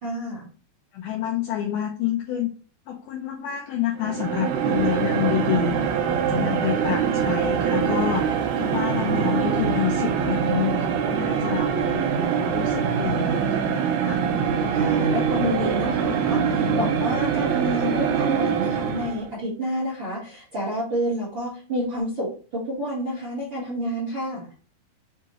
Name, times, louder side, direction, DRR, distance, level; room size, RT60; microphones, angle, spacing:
voice 1, 0.0-0.5 14.7-22.3 22.5-24.5, equal, 50° right, -7 dB, 1.5 m, -29 dB
voice 2, 0.9-2.5 2.9-5.8 6.1-11.7 12.5-14.2, left 10 dB, 80° left, 0 dB, 1.8 m, -28 dB
sound 1, 4.0-19.3, right 7 dB, 85° right, 1.8 m, -23 dB
7.0 x 2.3 x 3.0 m, 0.39 s
omnidirectional pair, 4.3 m